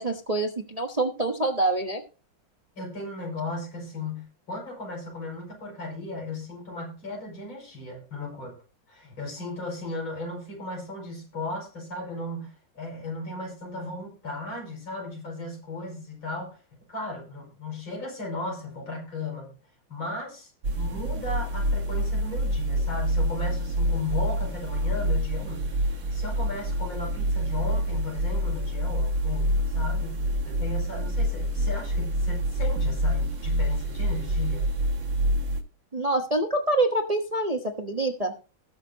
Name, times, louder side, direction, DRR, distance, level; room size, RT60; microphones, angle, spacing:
voice 1, 0.0-2.0 35.9-38.3, right 2 dB, 25° right, 3 dB, 0.9 m, -26 dB
voice 2, 2.8-8.6 8.9-16.6 16.9-19.5 19.9-34.7, left 2 dB, 75° left, 0 dB, 6.1 m, -36 dB
sound 1, 20.6-35.6, equal, 65° right, 2.4 m, -27 dB
20.0 x 6.6 x 2.8 m, 0.34 s
omnidirectional pair, 2.2 m